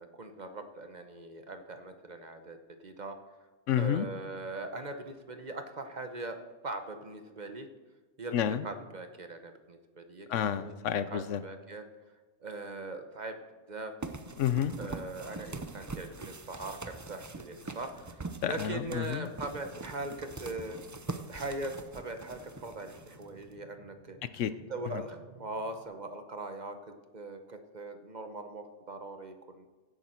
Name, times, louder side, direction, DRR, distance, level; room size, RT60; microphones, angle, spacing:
voice 1, 0.0-3.2 3.8-7.7 8.2-8.3 8.6-10.8 11.1-11.8 12.4-13.4 13.7-13.9 14.8-20.8 21.3-24.2 24.7-29.7, right 2 dB, 40° right, 7 dB, 1.0 m, -41 dB
voice 2, 3.7-4.1 8.3-8.7 10.3-11.4 14.4-14.7 18.4-19.3 24.2-24.5 24.9-25.0, left 9 dB, 85° left, 13 dB, 1.0 m, -30 dB
sound 1, 14.0-23.5, right 3 dB, 25° right, 0.4 m, -43 dB
sound 2, 16.2-25.8, left 1 dB, 5° left, 4.8 m, -58 dB
16.0 x 8.8 x 4.4 m, 1.3 s
omnidirectional pair, 1.2 m